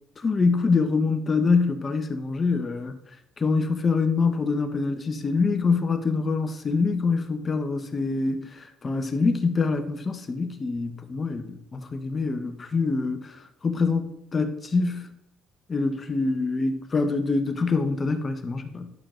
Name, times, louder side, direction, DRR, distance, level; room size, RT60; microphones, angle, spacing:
voice 1, 0.2-2.9 3.4-13.3 13.6-15.1 15.7-18.9, left 4 dB, 25° left, 1.1 m, -25 dB
11.0 x 6.6 x 3.9 m
cardioid pair, 135°, 0 cm